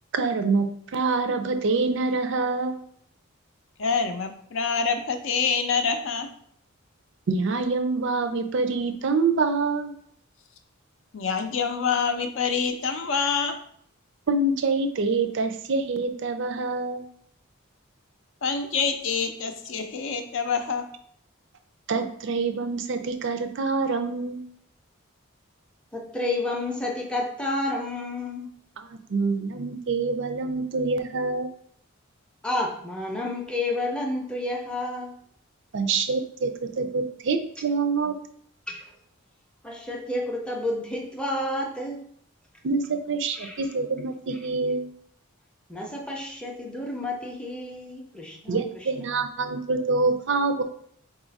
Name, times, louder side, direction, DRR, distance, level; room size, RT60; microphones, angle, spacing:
voice 1, 0.1-2.8 7.3-9.9 14.3-17.0 21.9-24.4 28.8-31.5 35.7-38.1 42.6-44.9 48.5-50.6, right 3 dB, 55° right, 8 dB, 0.4 m, -26 dB
voice 2, 3.8-6.3 11.1-13.6 18.4-20.9, left 5 dB, 60° left, 6 dB, 0.5 m, -26 dB
voice 3, 25.9-28.5 32.4-35.1 38.7-38.9 39.6-42.0 43.3-43.6 45.7-48.6, left 2 dB, 5° left, 0 dB, 0.5 m, -30 dB
3.9 x 2.4 x 4.0 m, 0.65 s
head